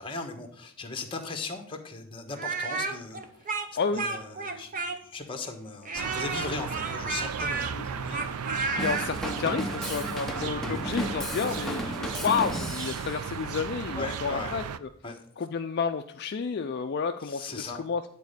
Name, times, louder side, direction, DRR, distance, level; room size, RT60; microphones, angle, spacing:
voice 1, 0.0-3.6 3.9-8.4 10.3-10.5 13.9-14.6 15.0-15.2 17.2-17.8, left 3 dB, 25° left, 5 dB, 1.1 m, -38 dB
Speech, 2.3-5.2 5.9-9.1, right 4 dB, 35° right, 0.8 m, -32 dB
sound 1, 5.9-14.8, right 7 dB, 80° right, 0.5 m, -35 dB
voice 2, 8.7-14.9 15.4-18.1, left 5 dB, 50° left, 6 dB, 0.4 m, -31 dB
Drum kit / Drum, 8.8-13.2, equal, ahead, 0.7 m, -34 dB
9.5 x 4.1 x 6.6 m, 0.62 s
head